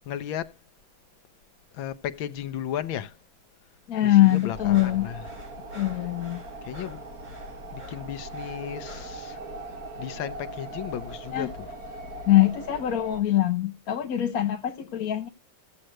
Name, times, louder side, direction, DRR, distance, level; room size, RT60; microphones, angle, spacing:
voice 1, 0.1-0.5 1.7-3.2 4.0-5.2 6.6-7.0 7.7-9.4 10.0-11.7, left 10 dB, 75° left, 1.6 m, -34 dB
voice 2, 3.9-5.1 5.7-6.4 11.3-11.5 12.3-15.3, left 14 dB, 55° left, 1.1 m, -23 dB
sound 1, 4.2-9.2, right 1 dB, 20° right, 3.6 m, -50 dB
sound 2, 4.5-13.2, right 2 dB, 50° right, 2.1 m, -40 dB
16.0 x 7.7 x 3.0 m
omnidirectional pair, 2.2 m